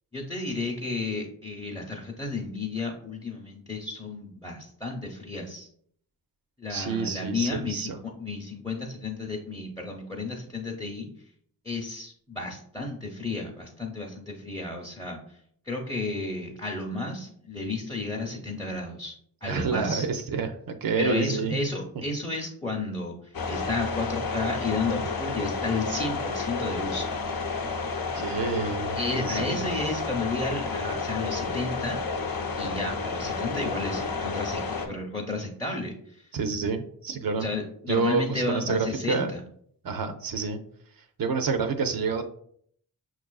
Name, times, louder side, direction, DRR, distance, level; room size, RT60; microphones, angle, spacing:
voice 1, 0.1-5.7 6.6-11.1 11.6-15.4 15.7-19.1 19.4-20.1 21.0-27.1 28.9-32.0 32.5-36.3 37.4-39.4, left 3 dB, 10° left, -1 dB, 0.7 m, -32 dB
voice 2, 6.7-8.0 19.5-21.6 28.1-29.6 36.3-37.5 37.9-39.3 39.8-40.6 41.2-42.2, right 5 dB, 60° right, 8 dB, 0.5 m, -28 dB
sound 1, 23.3-34.9, left 4 dB, 60° left, 0.7 m, -31 dB
5.9 x 2.4 x 2.3 m, 0.63 s
cardioid pair, 50°, 39 cm